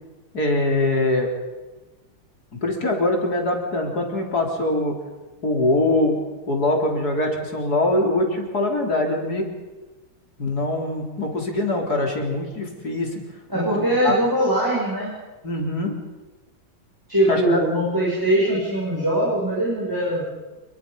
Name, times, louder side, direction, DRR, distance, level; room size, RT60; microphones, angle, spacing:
voice 1, 0.3-1.3 2.6-5.0 5.4-6.2 6.5-9.5 10.4-13.2 13.5-14.1 15.4-15.9 17.3-17.6, left 2 dB, 45° left, 1 dB, 4.4 m, -23 dB
voice 2, 13.5-15.1 17.1-20.2, right 1 dB, 10° right, -6 dB, 7.0 m, -21 dB
28.0 x 22.5 x 5.6 m, 1.2 s
omnidirectional pair, 2.3 m